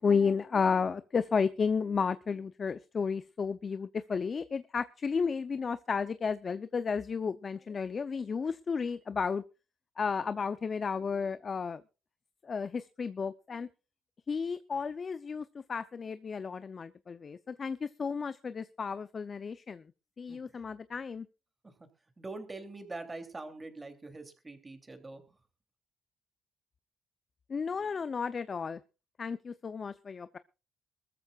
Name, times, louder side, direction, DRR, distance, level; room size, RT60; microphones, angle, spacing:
voice 1, 0.0-9.4 10.0-11.8 12.4-13.7 14.3-19.8 20.2-21.3 27.5-28.8 29.2-30.4, left 5 dB, 40° left, 13 dB, 0.6 m, -32 dB
voice 2, 20.3-20.6 21.6-21.7 22.2-25.4, right 2 dB, 20° right, 7 dB, 3.0 m, -44 dB
22.5 x 14.0 x 2.4 m, 0.31 s
cardioid pair, 90°, 0 cm